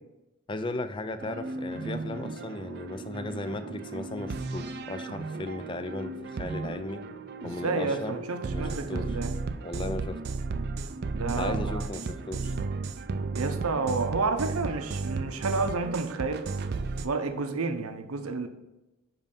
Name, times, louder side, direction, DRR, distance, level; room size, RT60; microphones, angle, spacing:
voice 1, 0.5-7.0 7.4-8.2 8.5-9.1 9.6-10.2 11.4-12.6, left 2 dB, 20° left, 10 dB, 0.3 m, -36 dB
sound 1, 1.2-17.1, right 3 dB, 50° right, 0.4 m, -34 dB
voice 2, 7.4-9.3 11.1-11.8 13.3-16.5 17.0-18.5, right 3 dB, 85° right, 8 dB, 0.7 m, -30 dB
5.4 x 5.2 x 5.3 m, 0.99 s
head